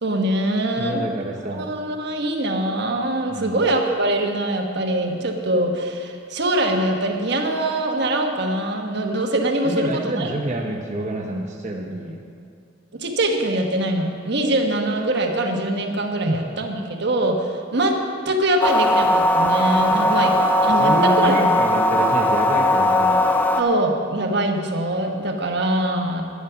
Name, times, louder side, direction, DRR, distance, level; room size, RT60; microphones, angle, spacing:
voice 1, 0.0-1.0 1.5-10.3 12.9-20.3 20.6-21.4 23.6-26.2, right 1 dB, 60° right, 3 dB, 1.3 m, -23 dB
voice 2, 0.7-1.7 3.3-3.6 9.6-12.2 16.3-16.4 19.8-20.2 20.7-23.3, right 1 dB, 35° right, -1 dB, 1.0 m, -28 dB
sound 1, 18.6-23.6, left 1 dB, 10° left, 0.7 m, -18 dB
11.5 x 11.0 x 5.9 m, 2.4 s
head